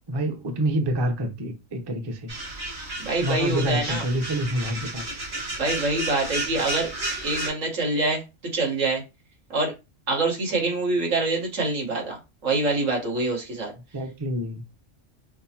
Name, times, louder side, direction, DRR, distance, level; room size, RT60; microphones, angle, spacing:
voice 1, 0.1-2.3 3.2-5.0 13.9-14.6, right 1 dB, 30° right, 0.5 m, -27 dB
sound 1, 2.3-7.5, right 2 dB, 65° right, 1.8 m, -32 dB
voice 2, 3.0-4.0 5.6-6.9 7.2-8.2 8.5-9.0 9.5-9.7 10.1-12.2 12.4-13.7, right 2 dB, 90° right, 1.7 m, -25 dB
5.4 x 2.0 x 2.8 m
omnidirectional pair, 1.3 m